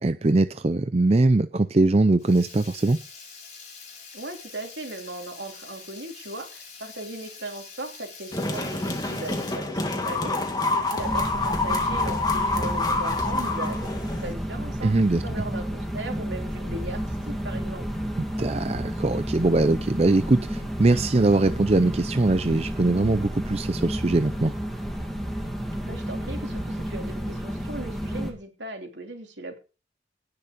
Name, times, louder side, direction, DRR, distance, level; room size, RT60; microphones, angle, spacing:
voice 1, 0.0-3.0 14.8-15.2 18.4-24.5, right 2 dB, 35° right, 11 dB, 0.5 m, -21 dB
Water tap faucet / Liquid, 2.2-9.6, left 5 dB, 40° left, 6.3 m, -45 dB
voice 2, 4.1-14.9 15.2-17.9 25.8-29.6, right 2 dB, 75° right, 3 dB, 3.2 m, -38 dB
sound 1, 8.3-14.3, left 2 dB, 20° left, 2.1 m, -27 dB
sound 2, 11.0-28.3, equal, ahead, 2.6 m, -31 dB
18.0 x 6.8 x 5.2 m, 0.34 s
head